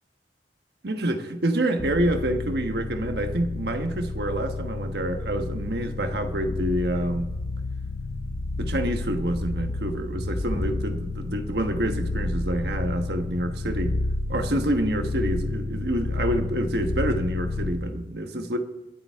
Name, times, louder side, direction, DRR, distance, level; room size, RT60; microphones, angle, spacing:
voice 1, 0.8-7.3 8.6-14.0 14.3-18.6, right 1 dB, 65° right, 5 dB, 1.3 m, -27 dB
sound 1, 1.8-17.9, left 2 dB, 40° left, 0.7 m, -30 dB
23.5 x 8.9 x 3.6 m, 1.1 s
head